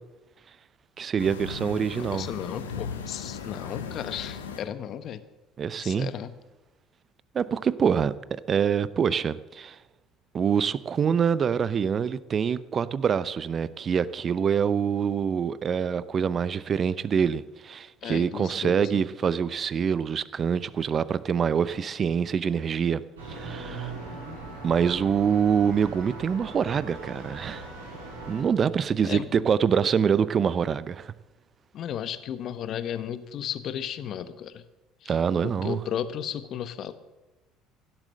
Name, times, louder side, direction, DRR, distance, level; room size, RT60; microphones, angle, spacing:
voice 1, 1.0-2.3 5.6-6.1 7.3-9.8 10.3-23.0 23.3-23.9 24.6-27.7 28.3-31.1 35.1-35.8, right 7 dB, 40° right, 0.7 m, -25 dB
sound 1, 1.2-4.6, left 6 dB, 85° left, 1.3 m, -37 dB
voice 2, 1.9-5.2 5.8-6.3 18.0-19.0 29.0-29.3 31.7-34.6 35.0-36.9, left 9 dB, 50° left, 1.0 m, -34 dB
sound 2, 23.1-28.4, right 3 dB, 80° right, 4.2 m, -40 dB
16.5 x 7.6 x 7.7 m
hypercardioid pair, 60°, 0 cm